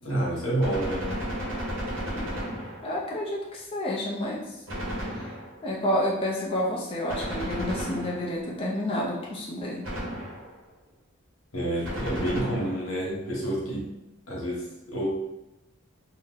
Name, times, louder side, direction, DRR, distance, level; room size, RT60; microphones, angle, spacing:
voice 1, 0.0-1.1 11.5-13.9 14.3-15.2, right 1 dB, 90° left, -4 dB, 0.9 m, -29 dB
Gunshot gunfire, 0.6-3.1 4.7-5.7 7.1-8.5 9.8-10.6 11.8-13.0, equal, 65° right, 0.9 m, -33 dB
voice 2, 2.8-4.4 5.2-5.3 5.6-9.9, left 1 dB, 25° left, -4 dB, 0.4 m, -29 dB
2.6 x 2.0 x 3.6 m, 0.94 s
head